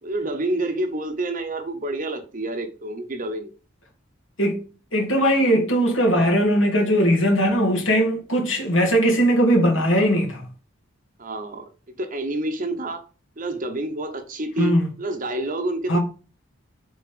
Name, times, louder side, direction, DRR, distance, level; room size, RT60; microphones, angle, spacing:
voice 1, 0.0-3.5 11.2-13.1 13.4-16.0, right 1 dB, 40° right, 1.0 m, -28 dB
voice 2, 4.9-10.5 14.6-14.9 15.9-16.0, equal, 75° left, 2.5 m, -19 dB
7.0 x 4.3 x 5.1 m
head